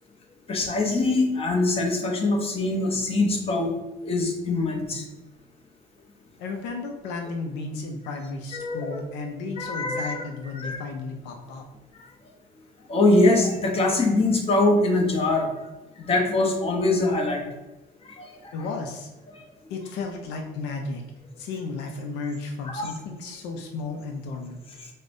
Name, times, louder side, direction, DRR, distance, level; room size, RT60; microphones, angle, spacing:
voice 1, 0.5-3.7 4.0-5.0 8.5-9.0 9.6-10.2 10.5-10.8 12.9-15.5 16.0-17.4 18.0-18.5 19.3-19.4 22.6-22.9 24.8-24.9, left 2 dB, 35° left, 2 dB, 0.7 m, -23 dB
voice 2, 6.4-11.6 18.5-19.1 19.7-21.0 21.4-24.6, left 3 dB, 85° left, 3 dB, 0.5 m, -33 dB
5.0 x 2.1 x 2.5 m, 1.1 s
cardioid pair, 110°, 17 cm